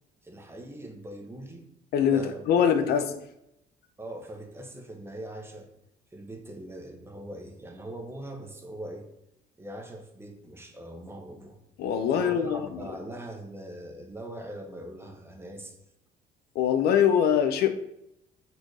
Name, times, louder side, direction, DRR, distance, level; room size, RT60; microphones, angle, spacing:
voice 1, 0.2-1.6 2.1-3.1 4.0-5.7 6.1-9.1 9.6-11.6 12.1-15.8, right 1 dB, 15° right, 2 dB, 0.8 m, -41 dB
voice 2, 1.9-3.0 11.8-12.7 16.6-17.7, left 8 dB, 70° left, 8 dB, 0.5 m, -23 dB
4.4 x 2.6 x 4.6 m, 0.82 s
cardioid pair, 110°, 17 cm